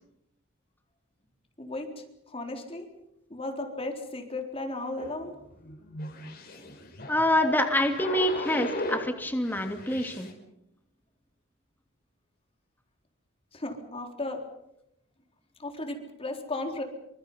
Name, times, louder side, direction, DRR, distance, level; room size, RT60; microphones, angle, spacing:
voice 1, 1.6-2.9 3.3-5.3 13.5-14.4 15.6-16.8, left 2 dB, 30° left, 3 dB, 3.9 m, -35 dB
sound 1, 5.0-9.1 9.4-10.3, left 2 dB, 50° left, 5.8 m, -37 dB
voice 2, 7.1-10.3, left 1 dB, 10° left, 5 dB, 2.9 m, -26 dB
28.0 x 25.5 x 5.6 m, 0.81 s
head